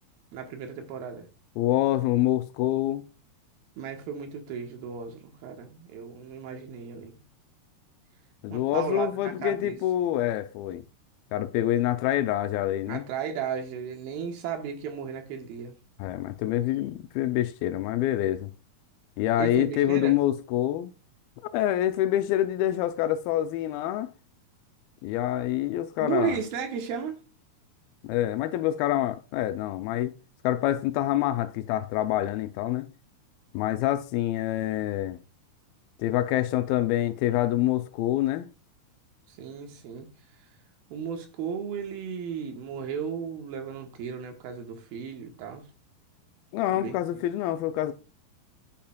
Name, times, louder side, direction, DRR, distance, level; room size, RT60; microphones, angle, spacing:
voice 1, 0.3-1.3 3.8-7.2 8.5-9.8 12.9-15.8 19.4-20.2 26.0-27.2 39.3-40.1 40.9-45.7 46.7-47.2, right 7 dB, 90° right, 3.1 m, -34 dB
voice 2, 1.6-3.0 8.4-10.8 11.3-13.0 16.0-18.5 19.2-20.9 21.5-24.1 25.0-26.4 28.0-30.1 30.4-32.9 33.5-35.2 36.0-38.5 46.5-47.9, left 13 dB, 90° left, 2.4 m, -26 dB
10.0 x 8.6 x 2.3 m
omnidirectional pair, 4.2 m